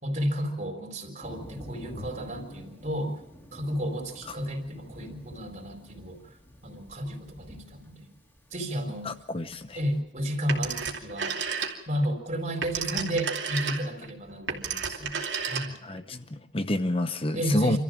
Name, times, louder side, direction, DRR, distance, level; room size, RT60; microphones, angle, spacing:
voice 1, 0.0-3.2 3.5-6.2 6.6-8.1 8.5-9.1 9.8-11.3 11.9-15.8 17.3-17.8, equal, 40° right, 4.2 m, -32 dB
Thunder, 1.2-10.0, equal, 15° left, 3.0 m, -48 dB
voice 2, 9.0-9.8 15.8-17.8, left 1 dB, 30° left, 0.9 m, -29 dB
Telephone, 10.5-12.0 12.4-16.0, right 6 dB, 80° right, 2.7 m, -32 dB
27.5 x 14.0 x 7.4 m
head